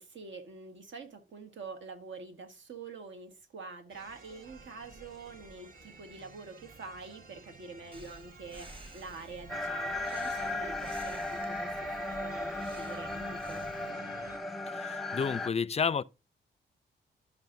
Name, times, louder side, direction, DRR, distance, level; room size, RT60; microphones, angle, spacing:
voice 1, 0.0-11.7 12.2-13.6, right 4 dB, 65° right, 1.5 m, -46 dB
sound 1, 3.9-14.4, right 3 dB, 45° right, 1.5 m, -53 dB
Breathing, 7.9-13.9, right 2 dB, 25° right, 1.7 m, -52 dB
sound 2, 9.5-15.5, left 2 dB, ahead, 0.8 m, -36 dB
voice 2, 14.7-16.0, left 6 dB, 30° left, 0.4 m, -31 dB
13.5 x 4.9 x 2.6 m
supercardioid pair, 55°, 21 cm